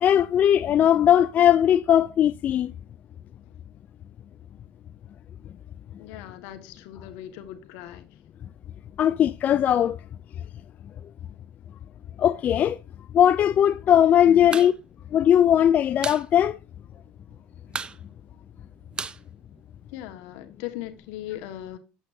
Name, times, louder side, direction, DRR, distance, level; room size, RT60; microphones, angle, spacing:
voice 1, 0.0-2.7 9.0-10.0 12.2-12.8 13.1-14.7 15.1-16.6, left 10 dB, 40° left, 0.4 m, -19 dB
voice 2, 6.0-8.0 14.3-14.6 19.9-21.8, left 13 dB, 75° left, 1.6 m, -39 dB
sound 1, 14.4-14.7 15.0-15.1 15.4-16.3 16.6-16.7 16.9-17.3 17.7-20.1, right 5 dB, 25° right, 0.5 m, -35 dB
8.8 x 8.0 x 2.7 m
supercardioid pair, 110°, 4 cm